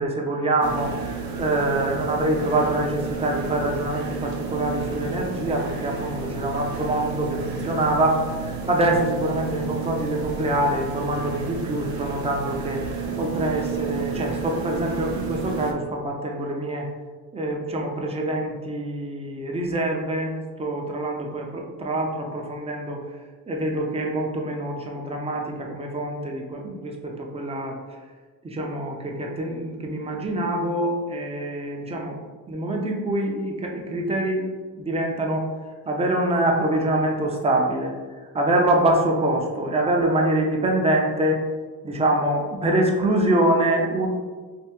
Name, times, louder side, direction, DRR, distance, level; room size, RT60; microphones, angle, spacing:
voice 1, 0.0-12.8 13.2-16.9 17.3-23.0 23.5-27.8 28.4-32.2 32.5-34.5 34.8-35.5 35.9-37.9 38.3-41.4 41.8-44.1, right 1 dB, 15° right, 0 dB, 0.4 m, -25 dB
sound 1, 0.6-15.7, right 5 dB, 65° right, 0.6 m, -32 dB
3.3 x 2.7 x 2.9 m, 1.4 s
cardioid pair, 125°, 39 cm